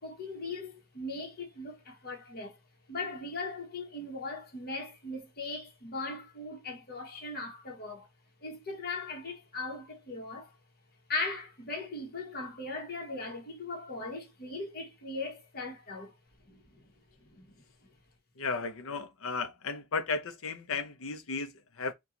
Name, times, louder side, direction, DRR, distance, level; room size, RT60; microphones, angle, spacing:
voice 1, 0.0-2.6 2.9-8.1 8.4-10.5 11.1-16.1 16.5-16.8 17.3-17.5, left 3 dB, 45° left, 1.2 m, -39 dB
voice 2, 18.4-21.5 21.8-21.9, left 4 dB, 65° left, 0.7 m, -34 dB
4.4 x 2.3 x 3.8 m
head